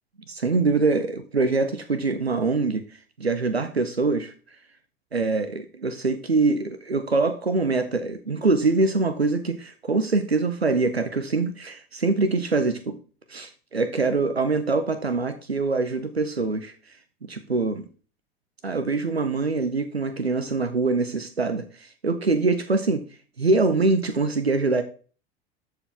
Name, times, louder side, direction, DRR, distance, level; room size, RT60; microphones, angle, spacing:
voice 1, 0.3-2.8 3.2-4.3 5.1-13.0 13.3-17.0 17.3-17.9 18.6-23.0 23.4-24.8, right 3 dB, 90° right, 11 dB, 0.6 m, -24 dB
13.0 x 4.6 x 3.5 m, 0.38 s
figure-of-eight pair, 75°, 30 cm